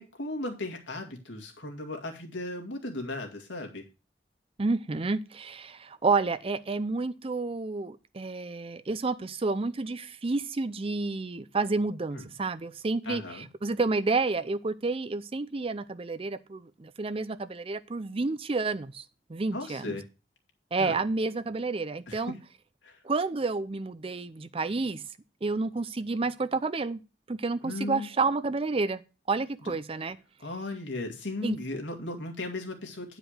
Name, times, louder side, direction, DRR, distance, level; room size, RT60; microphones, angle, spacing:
voice 1, 0.0-3.9 12.1-12.2 13.1-13.5 19.5-20.0 20.8-21.0 22.1-22.2 22.8-23.0 27.6-28.1 29.6-29.7 30.4-33.2, left 2 dB, 90° left, 2 dB, 2.2 m, -36 dB
voice 2, 4.6-19.0 19.3-20.0 20.7-22.3 23.0-25.0 25.4-27.0 27.3-29.0 29.3-30.2 31.4-31.6, right 3 dB, 30° right, 14 dB, 0.5 m, -30 dB
9.8 x 5.0 x 6.4 m, 0.32 s
head